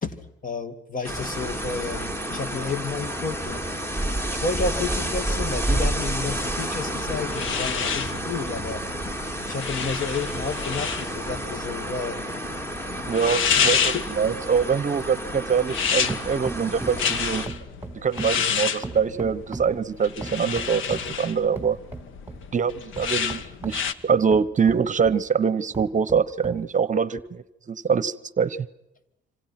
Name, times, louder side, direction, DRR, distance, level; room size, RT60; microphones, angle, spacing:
voice 1, 0.0-3.6 4.3-8.8 9.5-12.3 13.6-14.0, left 4 dB, 45° left, 11 dB, 2.5 m, -31 dB
sound 1, 1.0-17.5, right 1 dB, 10° left, 2.5 m, -30 dB
sound 2, 7.0-23.9, left 7 dB, 80° left, 1.3 m, -29 dB
sound 3, 12.5-15.8 16.1-17.1 17.5-19.8 20.2-21.1 21.6-22.4 23.0-25.2 25.7-26.6 27.2-27.3, right 2 dB, 10° right, 3.3 m, -39 dB
voice 2, 13.1-17.4 17.9-21.8 22.5-28.6, right 6 dB, 40° right, 18 dB, 0.9 m, -24 dB
26.5 x 26.0 x 6.0 m, 0.90 s
cardioid pair, 90°, 20 cm